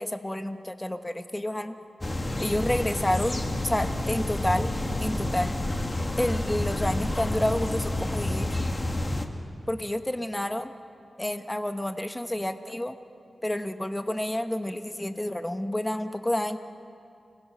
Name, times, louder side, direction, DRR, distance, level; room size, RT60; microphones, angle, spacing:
voice 1, 0.0-1.8 2.4-4.7 5.0-5.5 6.2-8.5 9.7-10.7 11.2-12.9 13.4-16.6, left 1 dB, 15° left, 8 dB, 1.2 m, -29 dB
sound 1, 2.0-9.3, left 1 dB, 30° left, 1.9 m, -29 dB
29.5 x 20.5 x 6.4 m, 2.5 s
cardioid pair, 65°, 0 cm